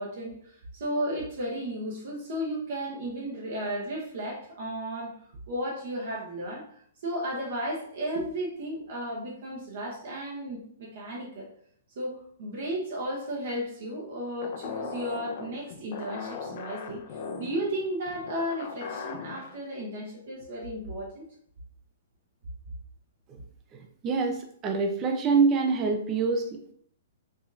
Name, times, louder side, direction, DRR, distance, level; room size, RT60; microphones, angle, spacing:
voice 1, 0.0-5.2 5.5-6.6 7.0-11.5 12.0-21.3, equal, 55° right, -3 dB, 0.9 m, -34 dB
sound 1, 14.4-19.6, left 5 dB, 50° left, 0.5 m, -39 dB
voice 2, 24.0-24.4 24.6-26.7, right 4 dB, 25° right, 4 dB, 0.5 m, -25 dB
4.8 x 2.9 x 2.6 m, 0.63 s
figure-of-eight pair, 115°, 0 cm